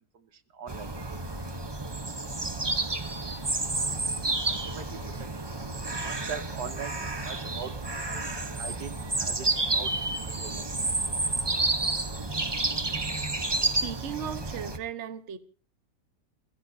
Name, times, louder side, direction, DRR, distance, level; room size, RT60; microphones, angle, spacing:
voice 1, 0.5-0.9 4.5-5.5 6.0-9.5 9.7-9.9 10.4-10.8, right 7 dB, 70° right, 1.6 m, -41 dB
sound 1, 0.7-14.8, right 2 dB, 20° right, 0.9 m, -30 dB
voice 2, 13.8-15.4, right 8 dB, 45° right, 1.3 m, -36 dB
29.5 x 15.5 x 2.8 m
omnidirectional pair, 1.8 m